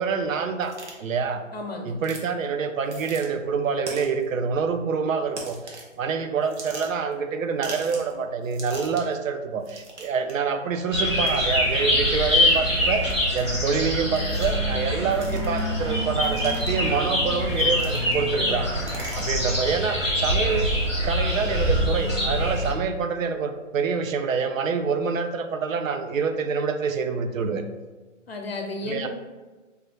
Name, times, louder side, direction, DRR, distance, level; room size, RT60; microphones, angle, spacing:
voice 1, 0.0-1.4 1.8-13.0 13.3-18.7 19.2-20.7 21.0-27.6 28.8-29.1, right 5 dB, 85° right, 8 dB, 0.5 m, -26 dB
sound 1, 0.6-0.9 2.0-2.3 2.8-3.3 3.9-4.2 5.3-5.9 6.4-7.1 7.6-8.1 8.4-9.1 9.6-10.3 11.2-11.4 12.3-12.5 13.1-13.4 14.1-14.6 15.1-15.6 16.2-16.9 17.5-18.3 18.6-19.5, right 2 dB, 60° right, 0.8 m, -40 dB
voice 2, 1.5-1.9 18.3-18.8 28.3-29.1, left 2 dB, 50° left, 2 dB, 0.4 m, -33 dB
sound 2, 10.9-22.7, left 1 dB, 25° right, 0.6 m, -24 dB
3.3 x 2.2 x 3.3 m, 1.3 s
hypercardioid pair, 175°, 39 cm